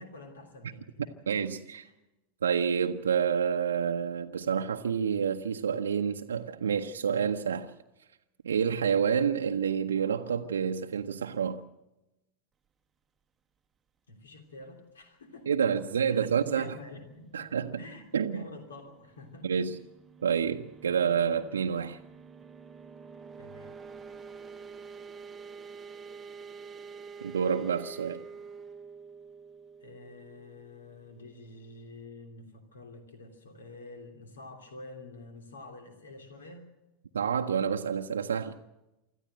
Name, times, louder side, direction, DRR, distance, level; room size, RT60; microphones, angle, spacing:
voice 1, 0.0-1.3 1.8-1.9 14.1-19.7 23.4-23.8 29.8-36.7, left 2 dB, 75° left, 3.1 m, -48 dB
voice 2, 1.3-1.9 2.4-7.7 8.4-11.6 15.5-16.7 17.3-17.8 18.1-18.4 19.4-19.8 20.2-22.0 27.2-28.2 37.1-38.6, right 7 dB, 75° right, 0.8 m, -28 dB
sound 1, 19.1-31.6, right 5 dB, 20° right, 0.9 m, -47 dB
25.5 x 14.0 x 7.8 m
figure-of-eight pair, 85°, 0 cm